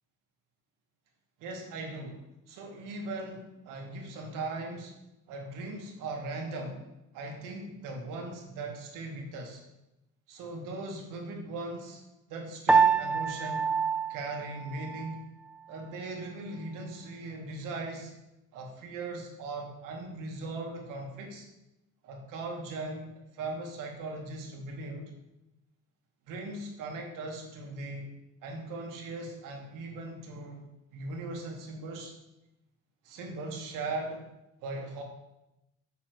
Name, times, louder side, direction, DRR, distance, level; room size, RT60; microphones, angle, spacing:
voice 1, 1.4-2.2 2.5-4.9 5.3-6.8 7.1-9.6 10.3-12.0 12.3-13.8 14.1-15.3 15.7-18.1 18.5-21.5 22.0-25.1 26.3-28.1 28.4-30.7 30.9-32.2 33.0-34.3 34.6-35.0, right 2 dB, 80° right, 1 dB, 2.1 m, -39 dB
Piano, 12.7-15.2, right 5 dB, 5° right, 0.4 m, -26 dB
7.3 x 6.5 x 4.7 m, 0.92 s
cardioid pair, 135°, 32 cm